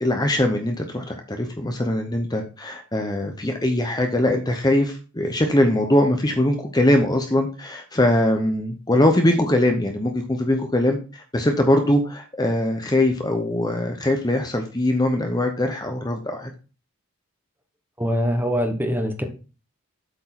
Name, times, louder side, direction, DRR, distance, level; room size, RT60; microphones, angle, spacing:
voice 1, 0.0-16.5, left 1 dB, 20° left, 5 dB, 0.8 m, -21 dB
voice 2, 18.0-19.2, equal, 10° right, 5 dB, 1.1 m, -23 dB
8.0 x 4.6 x 5.9 m, 0.34 s
head